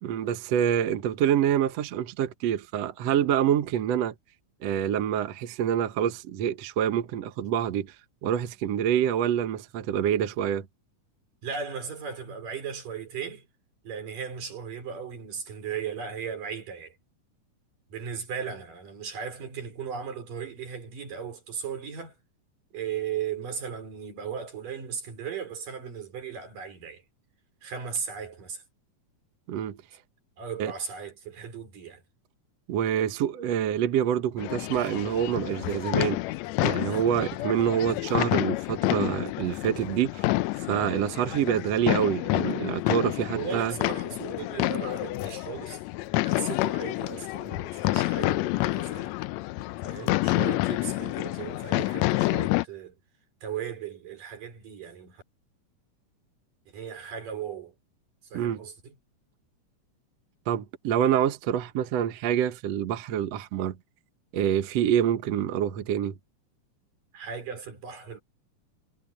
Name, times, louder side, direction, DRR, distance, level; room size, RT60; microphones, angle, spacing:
voice 1, 0.0-4.1 4.6-8.0 8.2-10.7 29.5-29.8 30.6-30.7 32.7-36.2 36.6-40.4 40.7-43.7 58.3-58.6 60.5-63.8 64.3-66.2, right 10 dB, 60° right, 2.0 m, -26 dB
voice 2, 11.4-13.5 13.8-16.9 17.9-22.1 22.7-27.0 27.6-28.6 30.4-32.0 43.3-45.8 46.2-49.2 49.8-52.9 53.4-55.2 56.7-57.7 58.3-58.9 67.1-68.2, right 7 dB, 85° right, 6.2 m, -37 dB
sound 1, 34.4-52.7, left 19 dB, 85° left, 1.5 m, -28 dB
omnidirectional pair, 3.7 m